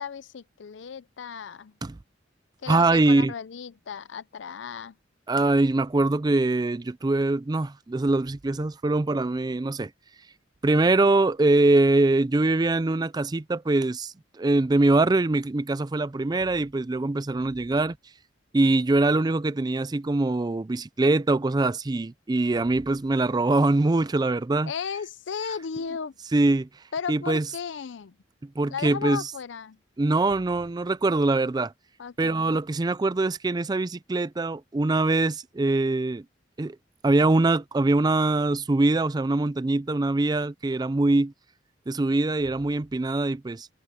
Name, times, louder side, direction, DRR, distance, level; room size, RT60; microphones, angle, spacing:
voice 1, 0.0-1.7 2.6-5.0 24.7-26.1 26.9-28.2 28.7-29.8 32.0-32.4, left 6 dB, 75° left, 0.5 m, -35 dB
voice 2, 2.7-3.3 5.3-9.9 10.6-18.0 18.5-24.7 26.3-26.7 27.1-27.4 28.6-29.2 30.0-31.7 32.2-36.2 36.6-36.8 37.0-41.3 41.9-43.7, right 2 dB, 20° right, 0.4 m, -23 dB
head